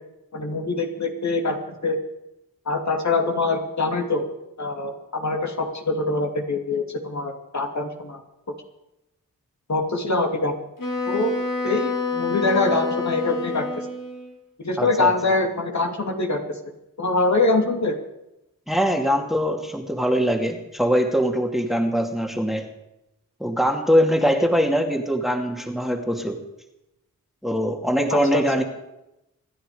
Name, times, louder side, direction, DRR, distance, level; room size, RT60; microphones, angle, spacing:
voice 1, 0.3-2.0 2.7-4.3 4.6-8.2 9.7-10.6 11.1-11.3 11.6-13.7 14.6-16.6 17.0-18.0 28.1-28.4, left 3 dB, 55° left, 3 dB, 2.8 m, -24 dB
Wind instrument woodwind instrument, 10.8-14.4, left 4 dB, 70° left, 4.4 m, -27 dB
voice 2, 14.8-15.1 18.7-22.7 23.4-26.4 27.4-28.6, equal, ahead, 3 dB, 2.4 m, -22 dB
26.5 x 11.0 x 5.1 m, 0.91 s
cardioid pair, 55°, 33 cm